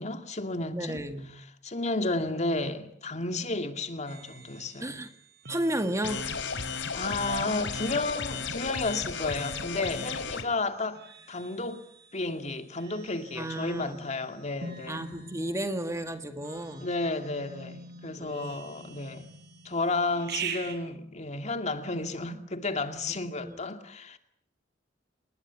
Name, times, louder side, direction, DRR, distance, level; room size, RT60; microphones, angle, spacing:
voice 1, 0.0-1.0 1.6-5.0 6.9-11.0 11.3-11.8 12.1-15.1 16.8-19.3 19.6-24.2, left 2 dB, 40° left, 2.4 m, -32 dB
voice 2, 0.7-1.3 4.8-5.1 5.5-6.2 9.2-9.3 13.4-14.1 14.9-16.9 18.2-18.7 23.4-23.6, right 1 dB, 15° right, 1.9 m, -33 dB
sound 1, 4.1-20.8, right 5 dB, 60° right, 6.3 m, -45 dB
sound 2, 6.0-10.4, left 5 dB, 85° left, 3.6 m, -34 dB
29.5 x 20.5 x 8.4 m
head